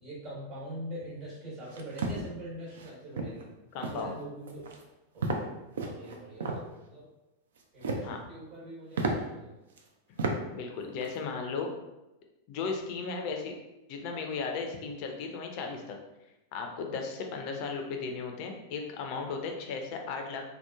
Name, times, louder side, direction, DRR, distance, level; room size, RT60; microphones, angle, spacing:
voice 1, 0.0-4.7 5.1-5.5 5.8-7.1 7.7-9.6, right 1 dB, 45° right, -6 dB, 1.1 m, -43 dB
sound 1, 1.6-2.2 2.7-2.9 3.2-3.4 3.8-4.1 4.5-4.8 5.2-5.5 5.7-6.6 7.6-8.1 8.5-8.6 8.9-9.1 9.8-9.9 10.2-10.4 10.7-11.1, right 3 dB, 60° right, 0.3 m, -32 dB
voice 2, 3.7-4.2 8.0-8.2 10.1-10.3 10.5-11.7 12.5-13.6 13.9-16.0 16.5-20.4, left 4 dB, 45° left, 3 dB, 0.4 m, -36 dB
2.8 x 2.1 x 2.3 m, 0.98 s
figure-of-eight pair, 90°, 0 cm